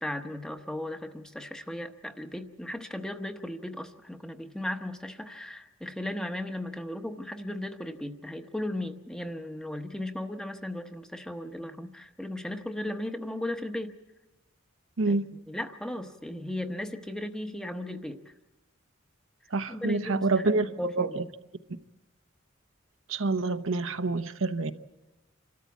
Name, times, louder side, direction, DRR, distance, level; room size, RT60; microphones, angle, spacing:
voice 1, 0.0-14.0 15.1-18.3 19.7-21.2, left 1 dB, 5° left, 6 dB, 0.9 m, -36 dB
voice 2, 15.0-15.3 19.5-20.7 21.0-21.2 23.1-24.7, right 3 dB, 75° right, 8 dB, 0.9 m, -27 dB
27.0 x 13.5 x 8.4 m, 1.1 s
head